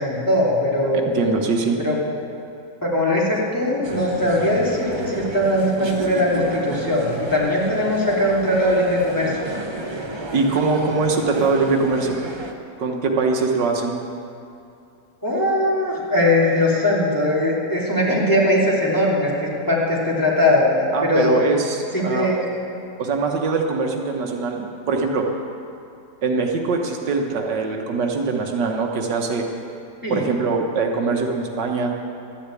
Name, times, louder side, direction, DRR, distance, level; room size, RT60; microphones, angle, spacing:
voice 1, 0.0-1.1 1.8-2.0 2.8-9.6 15.2-21.4 21.9-22.4 30.0-30.3, left 1 dB, 10° left, -6 dB, 2.7 m, -20 dB
voice 2, 0.9-1.8 10.3-12.2 12.8-14.0 20.9-22.5 23.0-25.3 26.2-29.4 30.1-31.9, right 4 dB, 80° right, 2 dB, 1.8 m, -22 dB
sound 1, 3.8-12.5, right 1 dB, 30° right, 0.5 m, -32 dB
12.5 x 10.0 x 8.4 m, 2.6 s
omnidirectional pair, 1.9 m